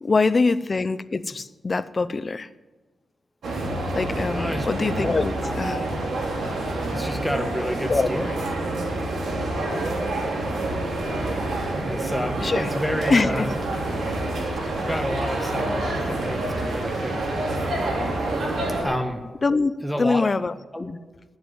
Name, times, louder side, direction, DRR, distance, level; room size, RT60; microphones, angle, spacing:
voice 1, 0.0-2.5 3.9-5.8 7.9-8.1 12.4-12.7 13.1-13.5 19.4-19.7 20.0-20.5 20.8-21.0, left 3 dB, 40° left, 15 dB, 0.5 m, -23 dB
sound 1, 3.4-18.8, right 2 dB, 75° right, 3.5 m, -27 dB
voice 2, 4.3-4.7 5.4-5.6 6.9-8.4 11.8-13.5 14.8-17.3 18.8-19.2 19.8-20.3 20.7-20.9, equal, ahead, 5 dB, 1.4 m, -30 dB
10.5 x 8.0 x 9.3 m, 1.2 s
cardioid pair, 85°, 0 cm